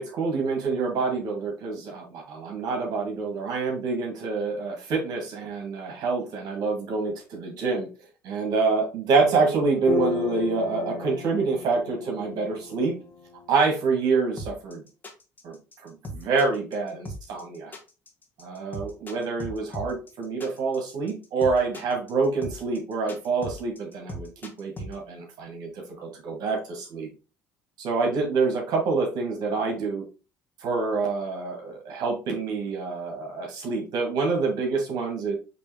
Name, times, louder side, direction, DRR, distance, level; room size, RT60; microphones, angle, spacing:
voice 1, 0.0-7.9 8.2-12.9 13.5-14.8 15.4-15.6 15.8-17.7 18.4-25.7 26.0-27.1 27.8-30.0 30.6-35.3, right 4 dB, 65° right, 0 dB, 1.7 m, -27 dB
sound 1, 9.1-13.6, left 3 dB, 65° left, 0.8 m, -33 dB
sound 2, 14.4-24.9, equal, 25° left, 1.3 m, -38 dB
5.2 x 3.0 x 3.4 m, 0.32 s
supercardioid pair, 95°, 7 cm